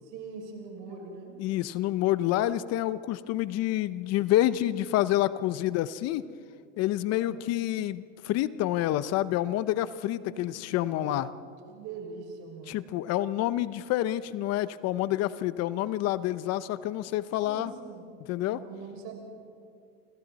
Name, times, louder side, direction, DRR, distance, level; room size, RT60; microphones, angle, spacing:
voice 1, 0.0-1.3 7.1-7.4 10.3-10.4 11.0-11.2 11.7-12.9 17.4-18.1 18.4-19.1, right 5 dB, 60° right, 1 dB, 6.4 m, -42 dB
voice 2, 1.4-6.2 6.8-11.3 12.7-17.7 18.3-18.6, left 14 dB, 50° left, 15 dB, 0.8 m, -28 dB
28.5 x 25.5 x 4.2 m, 2.5 s
supercardioid pair, 115°, 32 cm